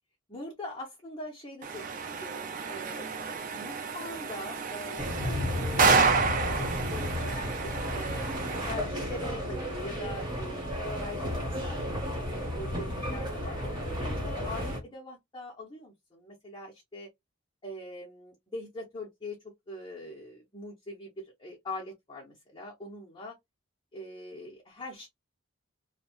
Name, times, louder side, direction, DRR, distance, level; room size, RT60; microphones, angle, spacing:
voice 1, 0.3-3.1 3.5-6.0 6.3-8.2 8.6-10.6 11.0-17.1 17.6-19.4 19.7-23.3 23.9-25.1, left 1 dB, 20° left, 0.6 m, -42 dB
sound 1, 1.6-8.7, right 5 dB, 40° right, 0.4 m, -30 dB
sound 2, 5.0-14.8, equal, 20° right, 1.1 m, -33 dB
2.6 x 2.0 x 2.9 m
head